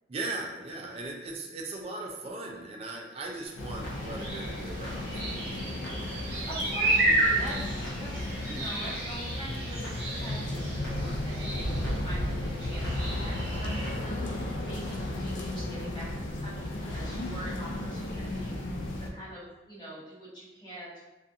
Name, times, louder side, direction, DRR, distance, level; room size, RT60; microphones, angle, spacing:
voice 1, 0.1-5.9, right 2 dB, 30° right, 0 dB, 0.3 m, -39 dB
Clock, 3.5-14.0, equal, 60° left, 0.7 m, -51 dB
sound 1, 3.6-19.1, left 1 dB, 85° left, 0.4 m, -34 dB
sound 2, 3.9-13.9, right 2 dB, 55° right, 0.8 m, -32 dB
voice 2, 6.3-21.0, right 1 dB, 25° left, -9 dB, 1.0 m, -44 dB
2.4 x 2.4 x 2.6 m, 1.0 s
head